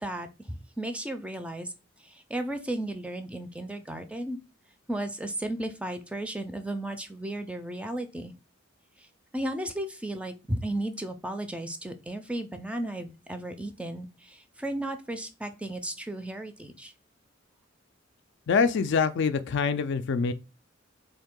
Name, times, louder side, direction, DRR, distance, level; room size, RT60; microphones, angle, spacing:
voice 1, 0.0-1.7 2.0-4.4 4.9-8.3 9.0-9.1 9.3-16.9, right 1 dB, 5° right, 0.4 m, -34 dB
voice 2, 18.5-20.3, left 5 dB, 65° left, 0.4 m, -25 dB
3.5 x 2.7 x 3.6 m
head